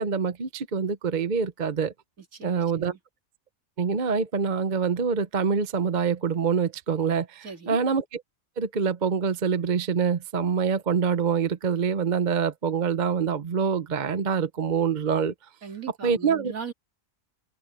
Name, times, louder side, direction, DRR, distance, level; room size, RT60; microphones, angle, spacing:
voice 1, 0.0-1.9 2.4-2.9 3.8-8.2 8.6-15.3 16.0-16.5, right 6 dB, 40° right, 0.9 m, -25 dB
voice 2, 2.3-3.0 7.4-7.8 15.6-16.7, right 6 dB, 70° right, 2.9 m, -39 dB
omnidirectional pair, 1.5 m